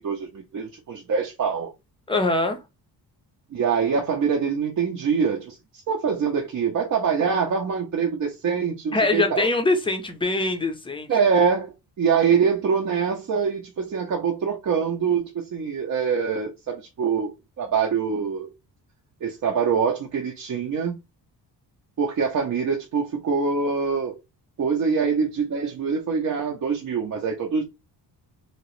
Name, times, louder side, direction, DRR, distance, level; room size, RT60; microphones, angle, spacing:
voice 1, 0.0-1.7 3.5-5.6 5.9-9.5 11.1-17.3 17.6-18.5 19.2-21.0 22.0-24.2 24.6-27.6, right 6 dB, 45° right, 0.6 m, -24 dB
voice 2, 2.1-2.6 8.9-11.1, left 2 dB, 15° left, 0.5 m, -23 dB
2.9 x 2.9 x 3.0 m
wide cardioid pair, 170°, 41 cm